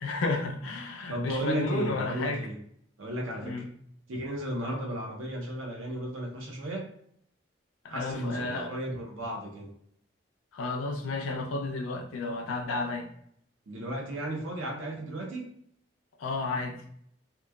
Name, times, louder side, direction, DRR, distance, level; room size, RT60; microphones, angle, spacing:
voice 1, 0.0-2.5 3.4-3.7 7.8-8.7 10.5-13.1 16.2-16.8, left 3 dB, 85° left, 0.4 m, -32 dB
voice 2, 1.1-2.5 3.0-3.7 4.1-6.9 7.9-9.7 13.7-15.4, right 1 dB, 80° right, 0.6 m, -34 dB
3.0 x 2.2 x 2.2 m
head